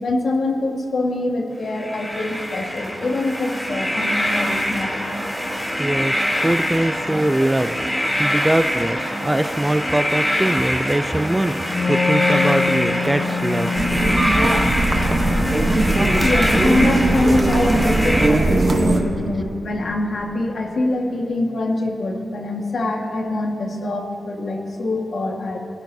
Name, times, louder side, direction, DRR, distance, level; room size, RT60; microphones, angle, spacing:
voice 1, 0.0-5.0 16.2-25.6, left 2 dB, 60° left, 1 dB, 1.6 m, -24 dB
sound 1, 1.7-18.3, equal, 5° left, 1.6 m, -24 dB
voice 2, 5.8-7.8 8.2-13.7, right 1 dB, 10° right, 10 dB, 0.3 m, -22 dB
Wind instrument woodwind instrument, 11.6-17.3, left 4 dB, 35° left, 0.6 m, -25 dB
sound 2, 13.8-19.0, right 2 dB, 30° right, 0.9 m, -19 dB
19.5 x 14.0 x 2.7 m, 2.7 s
wide cardioid pair, 135°, 0 cm